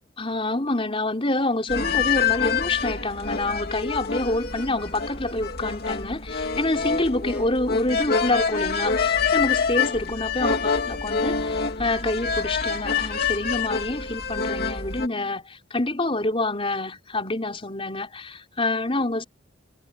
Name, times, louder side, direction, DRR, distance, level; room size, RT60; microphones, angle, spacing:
voice 1, 0.2-19.2, left 2 dB, 25° left, 4.5 m, -27 dB
sound 1, 1.7-15.1, left 5 dB, 50° left, 3.1 m, -26 dB
head